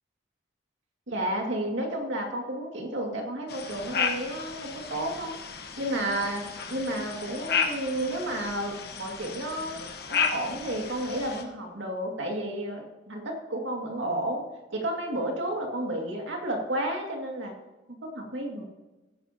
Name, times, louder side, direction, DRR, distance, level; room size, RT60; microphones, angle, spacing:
voice 1, 1.1-5.4 5.8-14.4 14.7-17.5 17.9-18.7, right 1 dB, 85° right, 1 dB, 2.1 m, -32 dB
sound 1, 3.5-11.4, left 6 dB, 55° left, 1.1 m, -33 dB
17.0 x 10.0 x 2.8 m, 1.1 s
head